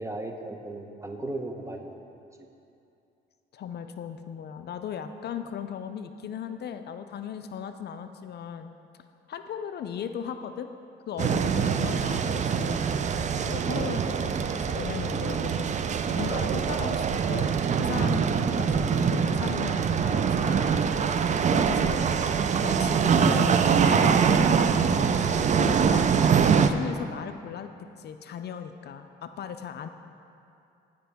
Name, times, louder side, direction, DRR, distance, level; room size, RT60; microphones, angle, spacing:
voice 1, 0.0-2.0 22.0-22.3, right 2 dB, 15° right, 4 dB, 0.8 m, -36 dB
voice 2, 3.5-8.7 9.3-10.7 11.1-12.8 13.5-15.8 16.1-20.9 21.5-22.0 22.6-25.2 25.6-26.0 26.4-27.7 28.0-29.9, left 8 dB, 55° left, 8 dB, 0.4 m, -37 dB
sound 1, 11.2-26.7, right 6 dB, 35° right, 0.4 m, -24 dB
14.5 x 5.2 x 3.5 m, 2.6 s
cardioid pair, 90°, 20 cm